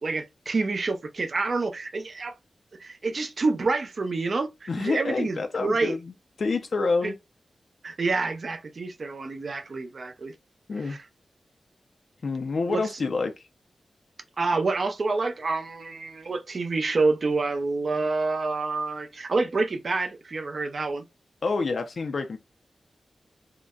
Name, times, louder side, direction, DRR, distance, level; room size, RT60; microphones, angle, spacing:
voice 1, 0.0-2.3 2.8-6.0 7.0-7.1 7.8-10.3 10.8-11.0 12.7-12.8 14.4-21.0, right 3 dB, 50° right, 0.5 m, -28 dB
voice 2, 4.7-6.1 6.4-7.2 10.7-11.0 12.2-13.5 21.4-22.4, left 4 dB, 60° left, 0.4 m, -27 dB
3.8 x 2.1 x 2.2 m
wide cardioid pair, 120°, 0 cm